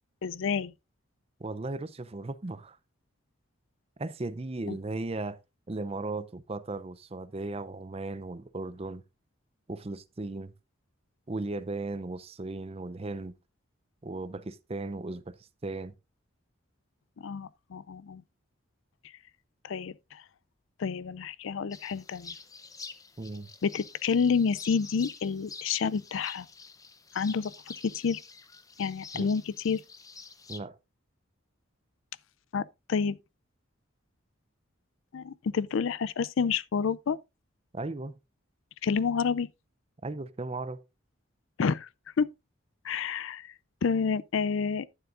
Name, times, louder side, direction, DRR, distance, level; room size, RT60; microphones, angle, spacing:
voice 1, 0.2-0.7 4.7-4.8 17.2-18.2 19.6-20.2 20.8-22.3 23.6-26.5 27.1-27.5 27.8-28.2 28.8-29.8 32.5-33.2 35.1-37.2 38.8-39.5 41.6-41.9 42.2-42.3 42.8-43.5 43.8-44.9, left 6 dB, 70° left, 0.4 m, -29 dB
voice 2, 1.4-2.8 4.0-5.4 5.7-9.0 9.7-10.5 11.3-13.3 14.0-15.4 15.6-15.9 23.2-23.5 29.1-29.3 30.5-30.8 37.7-38.1 40.0-40.8, right 2 dB, 30° right, 0.5 m, -36 dB
sound 1, 21.7-30.6, left 4 dB, 15° left, 0.7 m, -47 dB
11.0 x 9.5 x 2.5 m
head